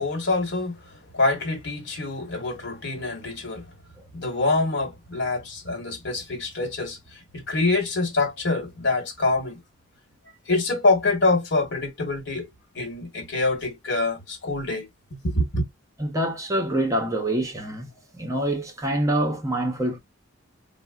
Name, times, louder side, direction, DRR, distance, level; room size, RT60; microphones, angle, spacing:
voice 1, 0.0-3.7 4.1-9.6 10.5-12.5 12.7-14.9 15.2-15.7, left 3 dB, 55° left, 1.3 m, -25 dB
voice 2, 16.0-20.0, right 1 dB, 15° right, 0.6 m, -26 dB
4.6 x 2.1 x 2.3 m
head